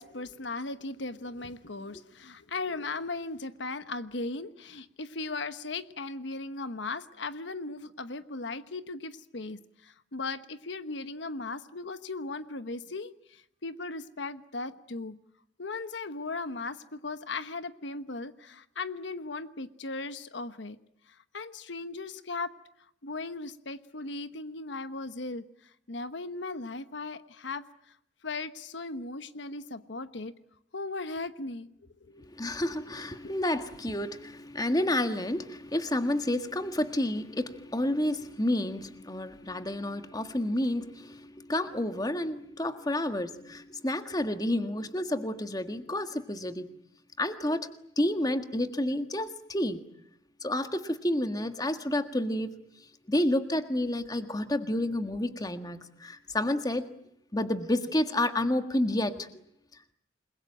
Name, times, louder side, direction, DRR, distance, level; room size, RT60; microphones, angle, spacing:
voice 1, 0.0-15.2 15.6-20.8 21.3-22.5 23.0-25.5 25.9-27.6 28.2-30.3 30.7-31.7 32.0-32.2 33.2-33.3, left 3 dB, 70° left, 12 dB, 1.1 m, -37 dB
voice 2, 32.2-46.7 47.2-47.7 48.0-49.8 50.4-52.5 53.1-56.9 57.3-59.3, left 1 dB, 20° left, 9 dB, 1.6 m, -30 dB
28.5 x 21.5 x 8.9 m, 0.76 s
head